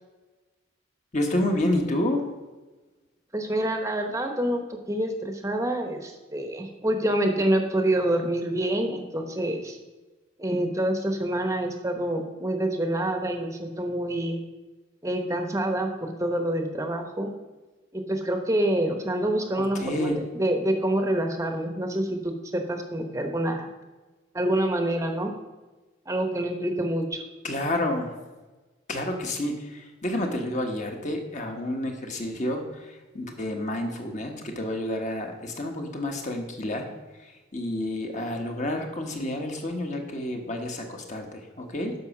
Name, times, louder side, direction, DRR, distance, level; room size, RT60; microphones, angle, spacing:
voice 1, 1.1-2.2 19.6-20.2 27.4-28.1 28.9-36.9 37.2-41.9, left 1 dB, 35° left, 3 dB, 1.3 m, -29 dB
voice 2, 3.3-9.8 10.4-14.4 15.0-17.3 17.9-23.7 24.3-25.3 26.1-27.2, right 1 dB, 15° right, 4 dB, 0.9 m, -27 dB
9.5 x 6.2 x 5.9 m, 1.2 s
head